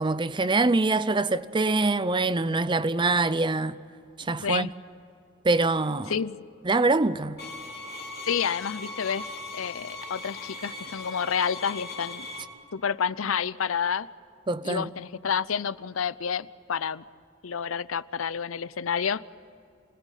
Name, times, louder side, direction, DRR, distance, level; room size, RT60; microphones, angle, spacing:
voice 1, 0.0-3.8 4.2-4.7 5.4-6.1 6.6-7.4 14.5-14.9, right 3 dB, 25° right, 0.6 m, -24 dB
sound 1, 7.4-12.4, left 3 dB, 50° left, 2.9 m, -39 dB
voice 2, 8.2-9.3 9.5-12.3 12.7-14.1 14.6-17.0 17.4-19.2, left 7 dB, 80° left, 0.6 m, -29 dB
29.0 x 20.0 x 9.2 m
head